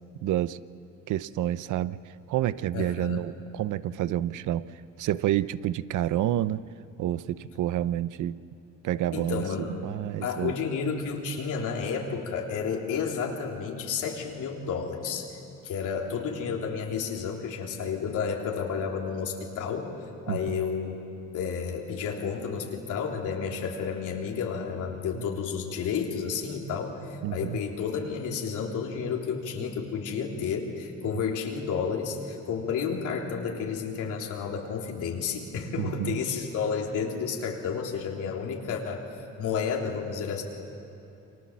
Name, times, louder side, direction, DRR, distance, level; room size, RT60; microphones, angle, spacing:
voice 1, 0.2-0.6 1.1-2.0 2.3-6.6 7.0-8.4 8.8-10.6 20.3-20.6 25.1-25.2 27.2-27.6 35.8-36.2, right 13 dB, 80° right, 16 dB, 0.7 m, -29 dB
voice 2, 2.7-3.2 9.1-9.7 10.2-15.4 15.6-19.9 20.3-21.0 21.3-40.4, left 6 dB, 85° left, 0 dB, 3.6 m, -31 dB
29.0 x 25.0 x 7.5 m, 2.9 s
cardioid pair, 90°, 30 cm